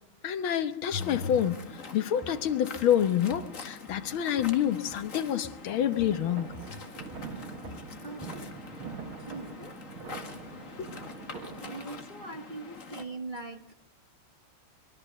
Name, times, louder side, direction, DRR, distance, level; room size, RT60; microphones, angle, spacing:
voice 1, 0.2-1.6 1.9-6.5 10.8-10.9, left 10 dB, 85° left, 2.0 m, -27 dB
Waves surf, 1.0-13.0, left 4 dB, 40° left, 2.2 m, -45 dB
Walk footsteps, 1.6-1.8 2.2-3.6 3.9-5.2 5.4-9.0 9.3-9.5 10.0-10.1, left 1 dB, 5° left, 4.8 m, -51 dB
sound 1, 5.8-12.0, right 6 dB, 85° right, 2.6 m, -44 dB
voice 2, 8.0-8.6 9.2-9.8 11.6-13.7, right 3 dB, 30° right, 1.2 m, -41 dB
25.0 x 23.0 x 6.8 m
omnidirectional pair, 2.2 m